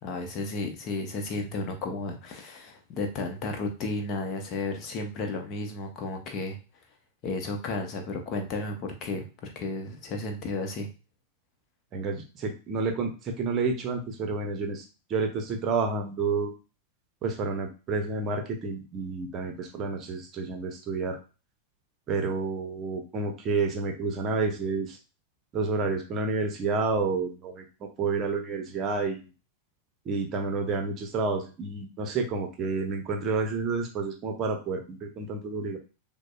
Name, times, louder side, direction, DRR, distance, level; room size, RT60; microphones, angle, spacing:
voice 1, 0.0-6.6 7.2-10.9, left 2 dB, 35° left, 4 dB, 0.8 m, -33 dB
voice 2, 11.9-14.8 15.1-16.5 17.2-21.2 22.1-25.0 25.5-29.3 30.0-35.8, right 4 dB, 30° right, 4 dB, 0.8 m, -30 dB
6.2 x 2.2 x 2.3 m, 0.32 s
figure-of-eight pair, 90°, 0 cm